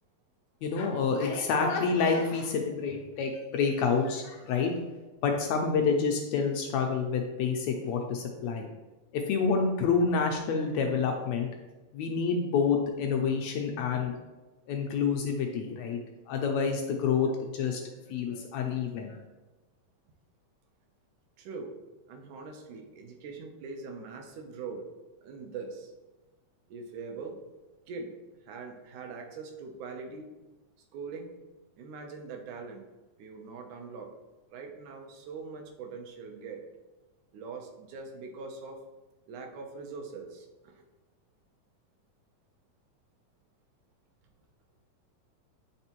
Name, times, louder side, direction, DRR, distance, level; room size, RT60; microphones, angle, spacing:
voice 1, 0.6-4.7 5.2-8.7 9.1-11.5 11.9-14.1 14.7-16.0 16.3-17.8 18.1-19.2, left 5 dB, 80° left, 3 dB, 1.6 m, -28 dB
voice 2, 13.7-14.0 21.4-21.7 22.1-24.8 25.2-25.9 26.7-27.4 27.9-28.1 28.5-30.3 30.9-31.4 31.8-32.8 33.2-34.1 34.5-36.6 37.3-38.8 39.3-40.8, right 4 dB, 75° right, 3 dB, 2.2 m, -42 dB
10.0 x 3.4 x 3.0 m, 1.2 s
omnidirectional pair, 3.6 m